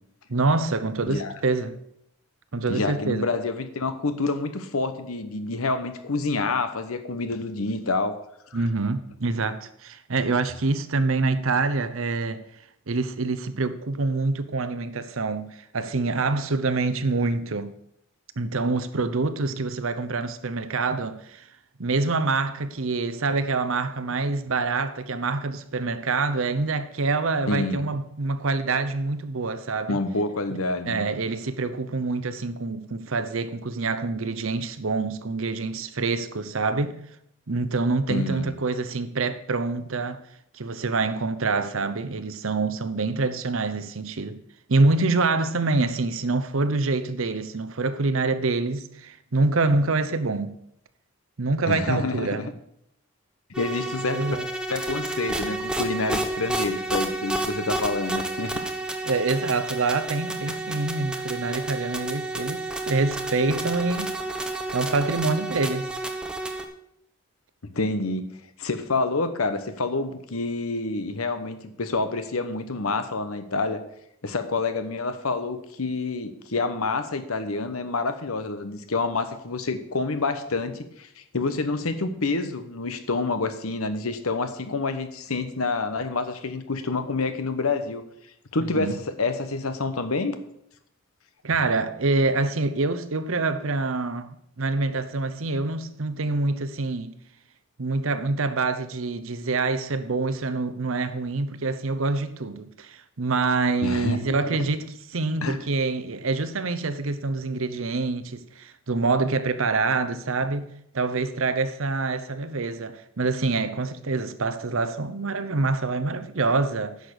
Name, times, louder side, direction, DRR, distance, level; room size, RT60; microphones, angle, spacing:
voice 1, 0.3-1.8 2.5-3.3 8.5-12.4 12.9-17.7 18.4-21.5 21.8-30.0 30.5-30.6 30.8-37.0 37.5-40.3 40.5-44.4 44.7-50.5 51.4-52.5 54.1-54.5 59.1-64.1 64.7-65.9 88.7-89.0 91.4-97.2 97.8-117.0, right 3 dB, 75° right, 0.8 m, -26 dB
voice 2, 2.7-8.1 8.5-8.6 27.5-27.9 29.9-31.0 38.1-38.5 51.7-52.5 53.6-54.3 54.7-58.6 60.5-60.6 67.7-73.8 74.2-81.1 81.3-88.0 88.5-90.4 103.8-104.6 105.4-105.6, left 3 dB, 90° left, 1.1 m, -28 dB
sound 1, 53.5-66.7, right 2 dB, 5° right, 0.8 m, -30 dB
10.5 x 6.6 x 6.7 m
head